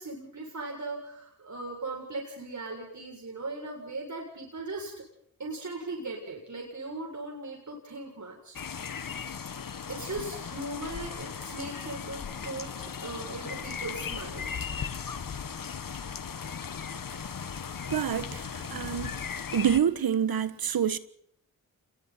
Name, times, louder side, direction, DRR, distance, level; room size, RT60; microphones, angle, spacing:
voice 1, 0.0-4.9 5.4-8.6 9.9-12.7 13.0-14.5, right 2 dB, 55° right, 7.5 m, -38 dB
sound 1, 8.5-19.8, left 6 dB, 65° left, 1.6 m, -37 dB
voice 2, 17.9-19.1 19.5-21.0, right 8 dB, 75° right, 1.4 m, -27 dB
28.0 x 22.0 x 4.5 m
cardioid pair, 50°, 36 cm